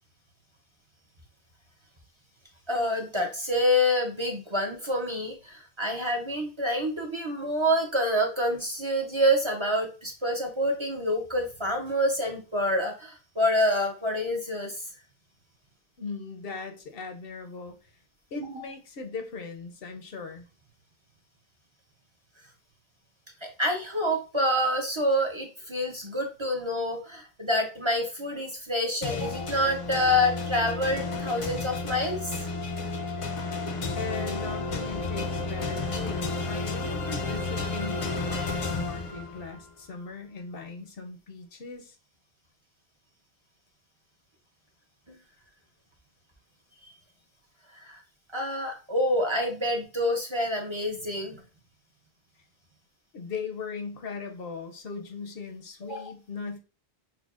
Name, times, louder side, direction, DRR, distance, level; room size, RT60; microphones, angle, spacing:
voice 1, 2.7-14.8 18.4-18.6 23.4-32.4 45.1-45.2 47.7-48.0 48.3-51.4 55.9-56.0, left 1 dB, 35° right, 1 dB, 0.6 m, -27 dB
voice 2, 16.0-17.9 18.3-20.4 34.0-42.0 53.1-56.6, left 4 dB, 70° left, 5 dB, 0.8 m, -39 dB
sound 1, 29.0-39.6, left 3 dB, 40° left, 0.5 m, -32 dB
5.9 x 2.2 x 2.4 m, 0.33 s
omnidirectional pair, 1.1 m